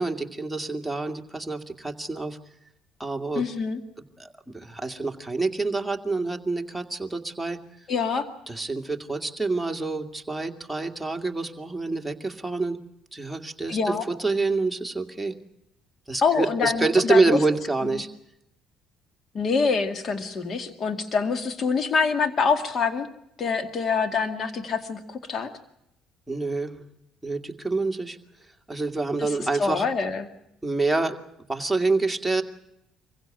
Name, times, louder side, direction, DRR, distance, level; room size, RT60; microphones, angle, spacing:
voice 1, 0.0-2.4 3.0-3.4 4.2-4.3 4.5-7.6 8.5-12.8 13.1-15.3 16.1-18.1 26.3-26.8 27.2-28.2 28.7-29.8 30.6-31.2 31.5-32.4, right 3 dB, 5° right, 3 dB, 2.2 m, -27 dB
voice 2, 3.4-3.8 7.9-8.3 13.7-14.0 16.2-17.4 17.8-18.0 19.3-23.1 23.4-25.5 29.2-29.3 29.6-30.3, left 5 dB, 45° left, 9 dB, 2.1 m, -25 dB
25.0 x 16.0 x 9.1 m, 0.81 s
supercardioid pair, 85°, 0 cm